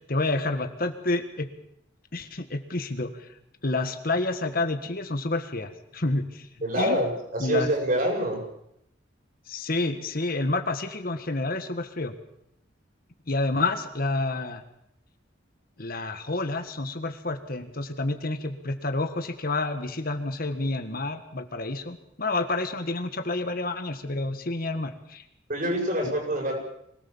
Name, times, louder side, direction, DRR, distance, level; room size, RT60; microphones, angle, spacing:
voice 1, 0.1-1.5 2.1-3.3 3.6-6.5 6.8-7.0 7.4-7.7 9.5-12.1 13.3-14.6 15.8-25.2 26.0-26.1, left 2 dB, 50° left, 7 dB, 1.7 m, -29 dB
voice 2, 6.6-8.4 25.5-26.5, equal, 45° right, 0 dB, 7.6 m, -26 dB
24.5 x 18.5 x 7.4 m, 0.78 s
head